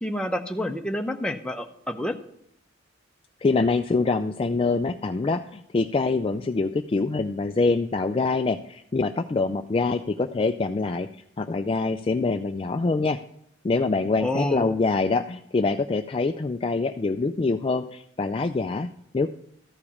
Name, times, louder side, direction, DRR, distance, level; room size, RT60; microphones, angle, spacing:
voice 1, 0.0-2.2 14.2-14.8, left 1 dB, 5° left, 3 dB, 0.7 m, -28 dB
voice 2, 3.4-11.1 11.4-13.2 13.6-18.9 19.1-19.3, left 3 dB, 30° left, 7 dB, 0.3 m, -25 dB
13.5 x 5.0 x 7.0 m, 0.72 s
head